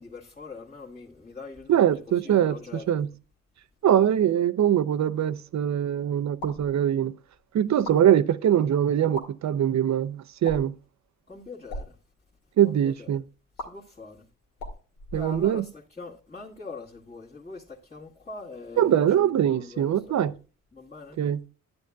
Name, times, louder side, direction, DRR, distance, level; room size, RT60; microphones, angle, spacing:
voice 1, 0.0-2.9 7.7-8.0 11.3-12.0 12.6-13.2 13.6-14.2 15.1-20.3 20.7-21.2, left 3 dB, 20° left, 1.9 m, -43 dB
voice 2, 1.7-2.6 2.9-3.1 3.8-7.1 7.5-10.7 12.6-13.2 15.1-15.6 18.8-20.3 21.2-21.4, right 10 dB, 50° right, 0.7 m, -22 dB
sound 1, 6.3-6.7 7.7-8.0 9.0-9.3 10.4-10.8 11.6-11.9 13.6-13.7 14.5-15.7, left 1 dB, 85° left, 2.2 m, -38 dB
10.5 x 9.4 x 2.3 m
supercardioid pair, 55°, 35 cm